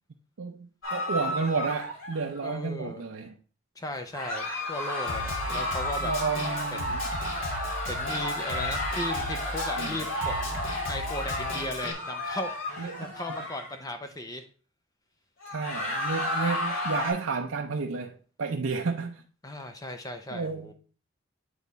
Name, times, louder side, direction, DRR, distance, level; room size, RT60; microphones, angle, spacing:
voice 1, 0.4-3.4 6.0-7.0 9.8-10.0 12.8-13.2 15.5-19.2 20.3-20.7, right 4 dB, 70° right, 0.6 m, -31 dB
sound 1, 0.8-2.4 4.1-13.7 15.4-17.1, left 1 dB, 85° left, 3.6 m, -32 dB
voice 2, 2.4-3.0 3.8-6.1 6.8-7.0 7.8-10.6 10.9-14.5 19.4-20.7, left 1 dB, 20° left, 0.6 m, -37 dB
Snare drum, 5.1-11.9, left 1 dB, 60° left, 1.5 m, -37 dB
8.5 x 3.5 x 4.0 m
head